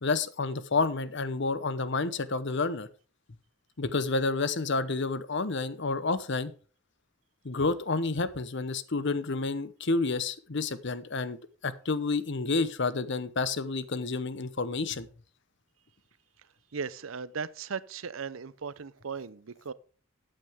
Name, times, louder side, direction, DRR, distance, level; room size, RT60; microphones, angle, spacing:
voice 1, 0.0-2.9 3.8-6.5 7.4-11.4 11.6-15.1, left 3 dB, 60° left, 0.9 m, -29 dB
voice 2, 16.7-19.7, right 5 dB, 85° right, 0.7 m, -37 dB
13.5 x 8.9 x 3.6 m
head